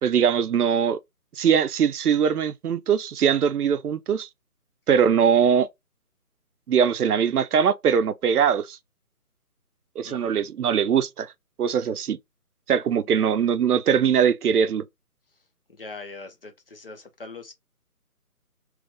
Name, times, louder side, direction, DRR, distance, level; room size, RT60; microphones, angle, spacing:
voice 1, 0.0-1.0 1.4-4.3 4.9-5.7 6.7-8.8 10.0-11.3 11.6-12.2 12.7-14.8, right 7 dB, 75° right, 0.6 m, -21 dB
voice 2, 10.0-10.4 13.0-13.3 15.7-17.5, left 3 dB, 40° left, 0.7 m, -42 dB
3.1 x 2.5 x 3.4 m
figure-of-eight pair, 165°, 45 cm